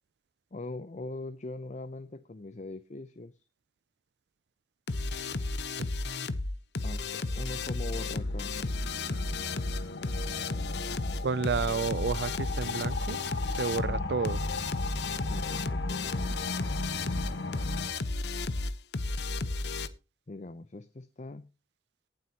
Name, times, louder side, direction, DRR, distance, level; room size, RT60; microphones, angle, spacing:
voice 1, 0.5-3.5 6.8-8.6 13.8-14.3 15.2-16.3 20.3-21.5, left 2 dB, 40° left, 0.6 m, -42 dB
sound 1, 4.9-19.9, left 3 dB, 70° left, 0.8 m, -33 dB
sound 2, 7.2-17.9, left 3 dB, 85° left, 1.3 m, -38 dB
voice 2, 11.2-13.2 13.5-14.4, right 5 dB, 65° right, 0.4 m, -31 dB
18.0 x 7.7 x 2.9 m
head